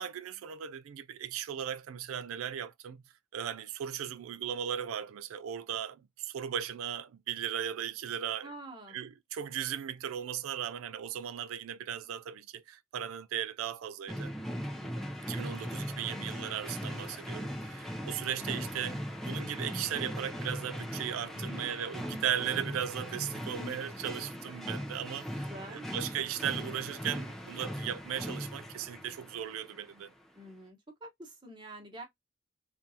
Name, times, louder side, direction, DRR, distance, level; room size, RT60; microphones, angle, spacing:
voice 1, 0.0-3.0 3.3-8.5 8.9-14.3 15.3-30.1, right 9 dB, 85° right, 0.3 m, -37 dB
voice 2, 8.4-9.0 14.8-15.1 21.3-21.8 25.3-25.9 30.3-32.0, right 1 dB, 20° right, 1.2 m, -47 dB
sound 1, 14.1-29.9, equal, ahead, 0.6 m, -39 dB
3.7 x 2.6 x 2.8 m
head